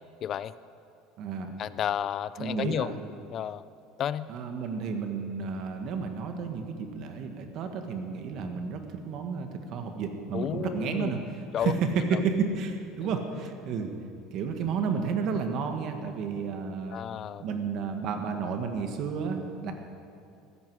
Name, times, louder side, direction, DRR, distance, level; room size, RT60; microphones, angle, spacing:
voice 1, 0.2-0.5 1.6-2.9 3.3-3.6 4.0-4.3 10.3-11.1 11.5-11.7 16.9-17.5, left 10 dB, 35° left, 16 dB, 0.4 m, -31 dB
voice 2, 1.2-1.5 2.4-2.9 4.3-11.2 11.6-13.9 14.3-17.0 17.4-19.7, right 5 dB, 50° right, 5 dB, 1.6 m, -31 dB
15.5 x 14.0 x 4.8 m, 2.5 s
cardioid pair, 140°, 0 cm